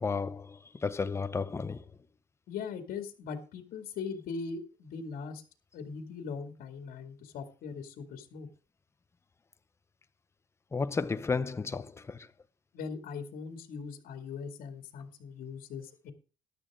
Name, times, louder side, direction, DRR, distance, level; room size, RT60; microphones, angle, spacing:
voice 1, 0.0-1.9 10.7-12.3, left 4 dB, 15° left, 0.7 m, -33 dB
voice 2, 2.5-5.4 5.7-8.5 12.7-16.1, left 5 dB, 70° left, 2.2 m, -40 dB
13.5 x 11.0 x 3.6 m
cardioid pair, 140°, 15 cm